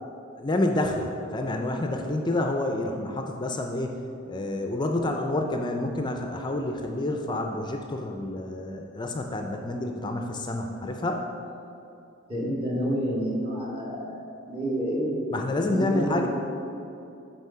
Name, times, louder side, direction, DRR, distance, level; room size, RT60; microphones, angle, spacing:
voice 1, 0.4-4.0 4.3-11.2 15.3-16.3, left 1 dB, 20° left, 3 dB, 0.4 m, -28 dB
voice 2, 12.3-15.2 15.6-16.3, equal, 30° right, -4 dB, 1.7 m, -29 dB
8.3 x 4.2 x 5.5 m, 2.7 s
head